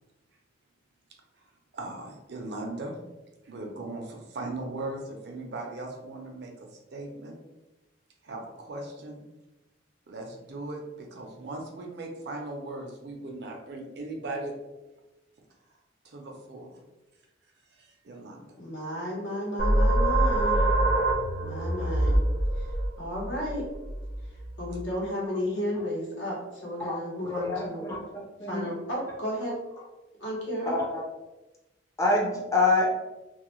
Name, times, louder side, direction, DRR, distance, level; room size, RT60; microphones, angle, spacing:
voice 1, 1.7-2.9 3.4-7.4 8.2-9.2 10.1-14.5 16.0-16.8 17.7-18.4, right 2 dB, 60° right, 1 dB, 0.5 m, -38 dB
voice 2, 18.6-20.6 21.4-22.2 22.6-22.7 23.0-23.6 24.6-27.8 28.5-29.5 30.2-30.8, equal, 75° left, -4 dB, 0.9 m, -33 dB
sound 1, 19.6-24.9, right 1 dB, 45° left, 0.7 m, -25 dB
voice 3, 27.3-28.0 28.4-28.7 30.7-31.0 32.0-32.9, left 3 dB, 15° left, -3 dB, 0.5 m, -26 dB
2.3 x 2.1 x 2.9 m, 1.0 s
head